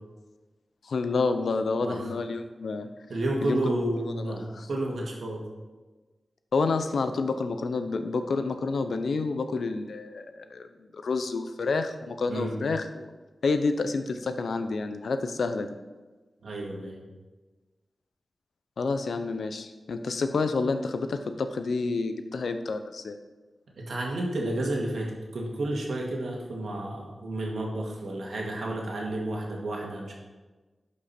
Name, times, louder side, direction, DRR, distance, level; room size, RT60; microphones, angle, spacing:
voice 1, 0.8-2.9 3.4-3.6 4.0-4.7 6.5-10.3 10.5-10.7 11.0-13.1 13.4-15.8 18.8-23.2, left 4 dB, 85° left, 8 dB, 0.7 m, -29 dB
voice 2, 1.8-2.1 3.1-5.4 12.3-12.6 16.4-17.0 23.8-30.2, right 1 dB, 85° right, -1 dB, 2.1 m, -31 dB
11.5 x 5.4 x 4.3 m, 1.2 s
wide cardioid pair, 75°, 0 cm